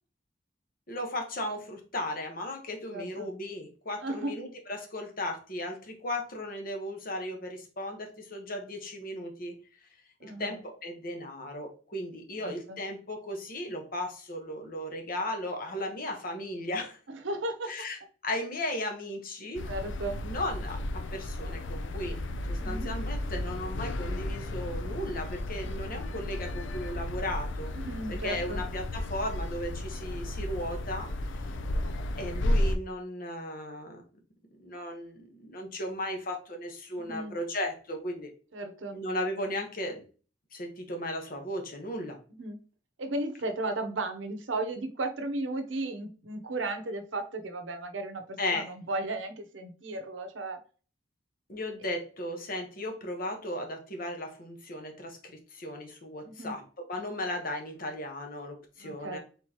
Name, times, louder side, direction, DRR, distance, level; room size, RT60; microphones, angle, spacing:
voice 1, 0.9-9.5 10.2-17.0 17.7-19.6 20.2-22.2 22.5-27.7 28.1-31.5 32.2-34.0 34.6-38.3 38.9-40.0 40.5-42.2 48.4-48.7 51.5-59.2, left 1 dB, 50° left, 3 dB, 1.2 m, -36 dB
voice 2, 2.9-3.3 4.0-4.4 10.2-10.6 12.4-12.8 17.1-17.7 19.7-20.2 22.6-22.9 27.7-28.6 37.0-37.3 38.5-39.0 42.3-42.6 43.0-50.6 56.2-56.5 58.8-59.2, right 2 dB, 75° right, 6 dB, 0.8 m, -35 dB
sound 1, 19.5-32.8, left 1 dB, 75° left, 0.5 m, -33 dB
4.6 x 3.9 x 2.9 m, 0.38 s
head